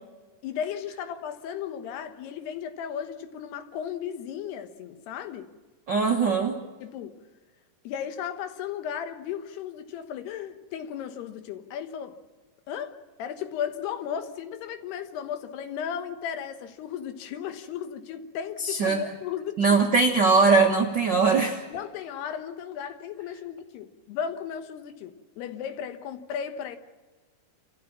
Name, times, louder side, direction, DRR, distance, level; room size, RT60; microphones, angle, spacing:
voice 1, 0.4-5.5 6.8-7.2 7.8-12.2 12.7-19.8 21.7-26.8, left 8 dB, 85° left, 3.3 m, -35 dB
voice 2, 5.9-6.6 18.6-19.0 19.6-21.6, right 4 dB, 90° right, 0.9 m, -21 dB
28.0 x 14.5 x 7.4 m
omnidirectional pair, 4.6 m